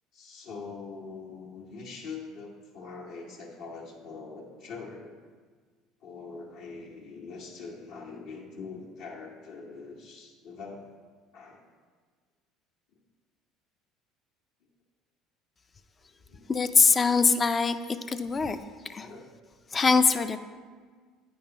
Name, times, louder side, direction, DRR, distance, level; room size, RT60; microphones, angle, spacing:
voice 1, 0.1-5.2 6.0-10.9 11.3-11.6 16.0-16.5 18.9-19.3, left 4 dB, 70° left, -1 dB, 1.2 m, -43 dB
voice 2, 16.5-17.8 18.1-18.6 18.9-19.1 19.7-20.4, left 4 dB, 30° left, 10 dB, 0.4 m, -22 dB
8.7 x 5.2 x 2.9 m, 1.5 s
hypercardioid pair, 65°, 0 cm